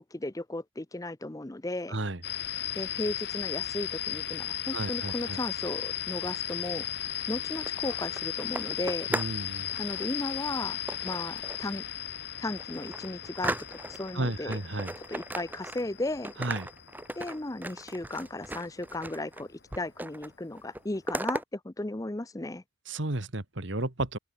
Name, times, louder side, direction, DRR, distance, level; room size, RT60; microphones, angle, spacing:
voice 1, 0.0-2.0 2.7-6.9 7.3-9.1 9.8-11.8 12.4-14.6 15.1-16.3 17.1-22.6, left 2 dB, 15° left, 0.6 m, -35 dB
sound 1, 2.2-18.9, left 11 dB, 55° left, 1.4 m, -36 dB
voice 2, 4.7-5.4 9.1-9.7 14.1-14.9 16.4-16.7 22.9-24.2, right 2 dB, 60° right, 1.9 m, -33 dB
sound 2, 7.4-9.4 9.7-10.1 10.9-11.7 12.1-12.2 12.6-14.1 14.5-16.0 16.2-19.4 19.7-20.3 20.6-21.4, right 1 dB, 10° right, 1.0 m, -37 dB
open air
head